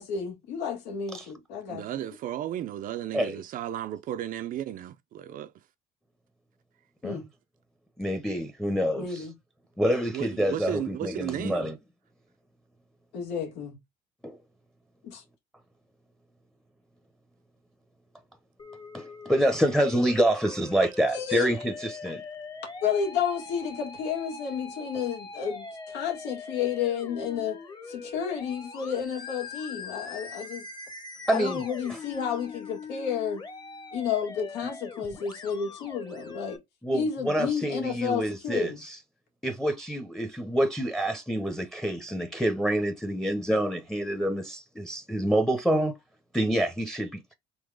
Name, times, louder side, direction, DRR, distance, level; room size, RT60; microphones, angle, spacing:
voice 1, 0.0-1.8 7.0-7.3 8.9-9.3 13.1-13.8 15.0-15.2 21.1-21.5 22.8-27.6 27.9-30.7 31.3-33.4 33.9-36.6 36.9-38.8, left 7 dB, 85° left, 1.9 m, -31 dB
voice 2, 1.7-5.5 10.1-11.7, right 11 dB, 55° right, 0.5 m, -34 dB
voice 3, 8.0-9.2 9.8-11.8 14.2-14.4 18.9-22.2 31.3-31.6 36.8-39.0 39.4-45.9 46.3-47.3, right 1 dB, ahead, 0.8 m, -27 dB
Musical instrument, 18.6-36.6, left 4 dB, 25° left, 1.1 m, -42 dB
3.9 x 2.9 x 4.7 m
cardioid pair, 125°, 17 cm